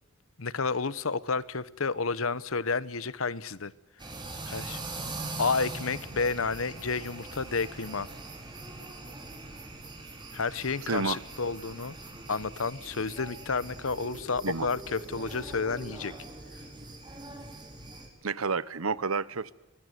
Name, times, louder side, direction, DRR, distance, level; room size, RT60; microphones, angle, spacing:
voice 1, 0.4-3.7 4.5-4.8 5.4-8.1 10.3-11.9 12.3-16.1, left 4 dB, 70° left, 18 dB, 1.0 m, -31 dB
sound 1, 4.0-18.1, right 2 dB, 20° right, 4.7 m, -42 dB
voice 2, 10.9-11.2 14.4-14.7 18.2-19.5, right 4 dB, 85° right, 19 dB, 1.0 m, -30 dB
23.5 x 20.5 x 9.4 m, 1.0 s
head